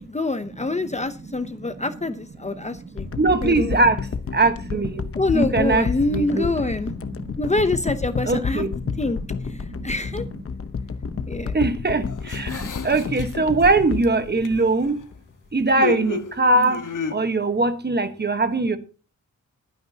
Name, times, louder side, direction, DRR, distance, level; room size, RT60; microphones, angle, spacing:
voice 1, 0.0-3.1 3.4-3.8 5.2-6.9 7.4-8.6 9.0-9.2 9.8-10.2 11.3-11.6, left 2 dB, 20° left, 0.7 m, -25 dB
voice 2, 2.4-4.1 4.3-5.1 5.3-6.7 7.2-7.3 8.2-9.0 9.7-9.9 11.0-11.2 11.5-15.0 15.5-18.8, right 3 dB, 35° right, 1.2 m, -22 dB
sound 1, 3.0-15.2 15.7-15.8, left 5 dB, 45° left, 0.9 m, -30 dB
sound 2, 11.9-13.6 14.0-15.0 15.8-17.1, left 5 dB, 80° left, 1.4 m, -32 dB
22.0 x 9.3 x 2.8 m
wide cardioid pair, 160°, 31 cm